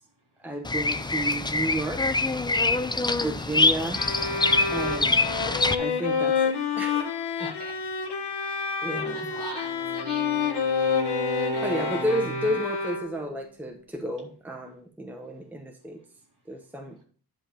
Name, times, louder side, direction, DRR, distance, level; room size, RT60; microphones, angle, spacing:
voice 1, 0.4-2.2 3.2-4.0 4.7-5.2 5.8-7.1 7.4-7.5 8.8-9.3 11.6-16.0 16.5-17.0, right 1 dB, 5° right, 0.9 m, -32 dB
Bird vocalization bird call bird song, 0.6-5.7, left 3 dB, 10° left, 0.3 m, -24 dB
sound 1, 3.9-13.4, left 6 dB, 90° left, 1.3 m, -29 dB
voice 2, 7.4-7.8 9.1-10.5, right 3 dB, 50° right, 3.4 m, -41 dB
Bowed string instrument, 9.0-12.6, equal, 70° right, 3.0 m, -33 dB
10.5 x 3.6 x 6.9 m
wide cardioid pair, 145°, 40 cm